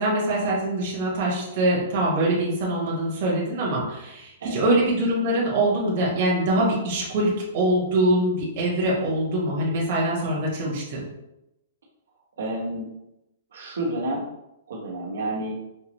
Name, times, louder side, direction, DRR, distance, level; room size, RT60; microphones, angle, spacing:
voice 1, 0.0-11.0, right 1 dB, 35° right, -5 dB, 1.1 m, -23 dB
voice 2, 12.4-12.9 13.5-14.2 14.7-15.6, right 1 dB, 85° right, -3 dB, 1.1 m, -30 dB
5.6 x 2.0 x 3.0 m, 0.88 s
hypercardioid pair, 180°, 0 cm